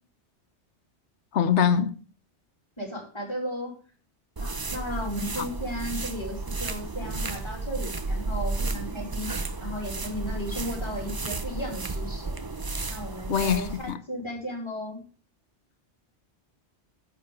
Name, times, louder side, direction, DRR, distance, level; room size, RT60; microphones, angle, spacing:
voice 1, 1.3-2.0 5.4-5.5 13.3-14.0, left 8 dB, 80° left, 1.2 m, -23 dB
voice 2, 2.8-3.7 4.4-9.3 9.6-12.3 12.9-15.0, equal, 25° left, 3.1 m, -35 dB
sound 1, 4.4-13.9, right 3 dB, 25° right, 0.5 m, -33 dB
9.4 x 7.7 x 4.8 m
omnidirectional pair, 1.2 m